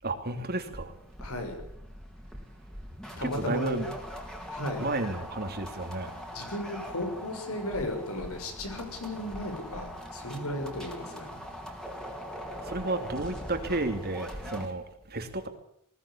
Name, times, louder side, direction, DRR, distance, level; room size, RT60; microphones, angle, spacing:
voice 1, 0.0-0.9 3.3-3.9 4.8-6.1 12.7-15.5, right 2 dB, 45° right, 7 dB, 2.8 m, -32 dB
sound 1, 0.7-14.7, equal, 5° left, 3.7 m, -42 dB
voice 2, 1.2-1.6 3.2-3.8 4.5-4.8 6.3-11.3, left 1 dB, 75° left, 5 dB, 6.5 m, -35 dB
20.5 x 17.5 x 8.6 m, 0.72 s
head